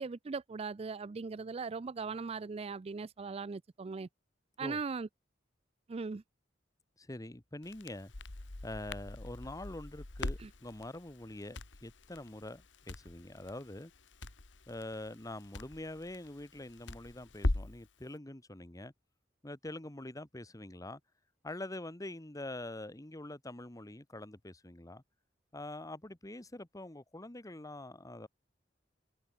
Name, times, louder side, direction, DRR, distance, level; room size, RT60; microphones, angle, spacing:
voice 1, 0.0-4.1 4.6-5.1 5.9-6.2 10.4-10.5, right 4 dB, 35° right, 0.4 m, -39 dB
voice 2, 7.0-8.1 8.6-13.9 14.7-18.9 19.4-21.0 21.4-25.0 25.5-28.3, left 1 dB, 20° left, 1.3 m, -45 dB
Crackle, 7.6-17.9, left 2 dB, 90° left, 1.6 m, -41 dB
head